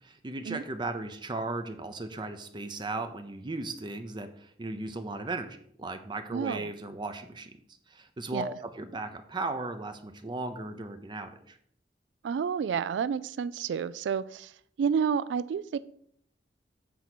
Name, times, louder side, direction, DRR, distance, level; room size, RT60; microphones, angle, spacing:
voice 1, 0.0-7.5 7.9-11.6, right 2 dB, 25° right, 0.6 m, -36 dB
voice 2, 6.3-6.7 8.3-8.5 12.2-14.5 14.8-15.8, right 7 dB, 80° right, 0.3 m, -30 dB
8.2 x 4.5 x 6.0 m
head